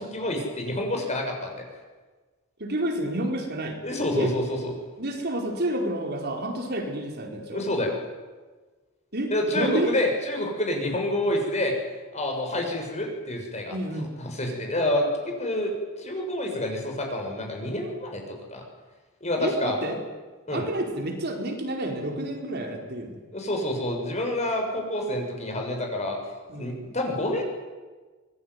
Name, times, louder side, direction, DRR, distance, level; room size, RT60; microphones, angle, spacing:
voice 1, 0.0-1.6 3.8-4.7 7.5-8.0 9.3-11.8 12.1-13.7 14.2-18.6 19.2-19.8 20.5-20.7 23.3-26.2 26.6-27.4, left 1 dB, 35° left, 2 dB, 6.8 m, -28 dB
voice 2, 2.6-3.8 4.2-4.3 5.0-7.6 9.1-9.9 13.7-14.1 19.4-20.0 20.5-23.2 26.5-26.9, right 1 dB, 50° right, 2 dB, 4.7 m, -29 dB
25.5 x 21.0 x 9.6 m, 1.3 s
head